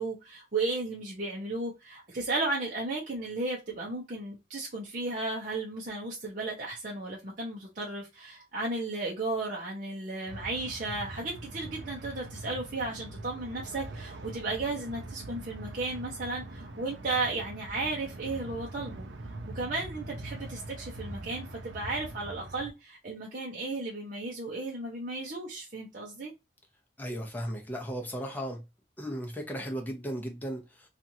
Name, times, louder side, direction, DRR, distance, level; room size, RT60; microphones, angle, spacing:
voice 1, 0.0-26.3, right 2 dB, 50° right, 0.7 m, -34 dB
sound 1, 10.3-22.7, right 2 dB, 85° right, 0.5 m, -43 dB
voice 2, 27.0-28.6 29.0-30.9, equal, 10° left, 0.7 m, -36 dB
2.9 x 2.5 x 2.6 m
head